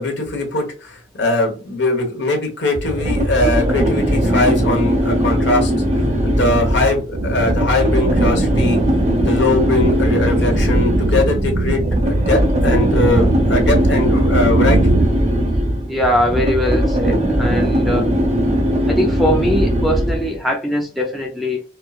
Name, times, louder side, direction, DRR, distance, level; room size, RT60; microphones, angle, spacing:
voice 1, 0.0-5.7 6.2-8.8 9.2-14.8, left 2 dB, 65° left, 1.2 m, -20 dB
sound 1, 2.8-20.4, equal, 35° right, 1.2 m, -19 dB
sound 2, 7.1-15.1, right 2 dB, 50° right, 0.5 m, -21 dB
voice 2, 15.9-18.1 18.9-21.6, equal, ahead, 0.4 m, -21 dB
4.4 x 2.1 x 2.4 m
head